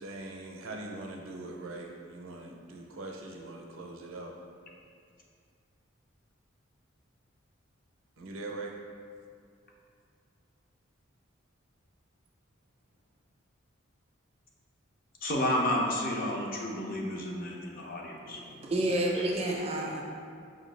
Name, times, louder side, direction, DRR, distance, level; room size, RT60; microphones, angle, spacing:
voice 1, 0.0-4.3 8.2-8.7, right 2 dB, 80° right, 1 dB, 0.5 m, -42 dB
voice 2, 15.2-18.4, left 1 dB, 45° left, -1 dB, 0.5 m, -31 dB
voice 3, 18.3-20.0, right 1 dB, 30° right, -1 dB, 0.3 m, -30 dB
5.0 x 2.6 x 3.2 m, 2.2 s
head